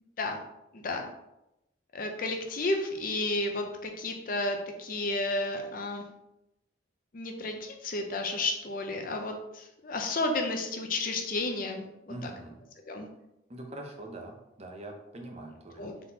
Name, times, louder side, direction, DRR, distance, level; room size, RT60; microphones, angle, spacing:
voice 1, 0.7-1.0 1.9-6.0 7.1-11.8 12.2-12.3 12.9-13.1 15.8-15.9, left 2 dB, 45° left, 4 dB, 0.5 m, -32 dB
voice 2, 12.1-12.6 13.5-15.9, right 1 dB, 30° right, 2 dB, 0.5 m, -43 dB
4.0 x 3.7 x 2.8 m, 0.89 s
head